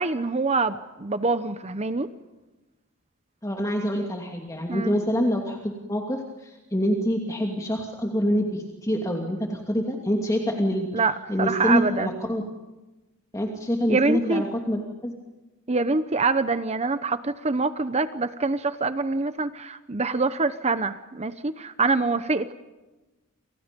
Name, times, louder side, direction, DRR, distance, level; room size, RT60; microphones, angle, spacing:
voice 1, 0.0-2.1 4.7-4.9 10.9-12.1 13.9-14.4 15.7-22.5, right 3 dB, 30° right, 12 dB, 1.0 m, -25 dB
voice 2, 3.4-10.9 11.3-12.4 13.3-15.1, equal, 15° left, 1 dB, 2.7 m, -26 dB
29.5 x 28.5 x 5.4 m, 1.1 s
head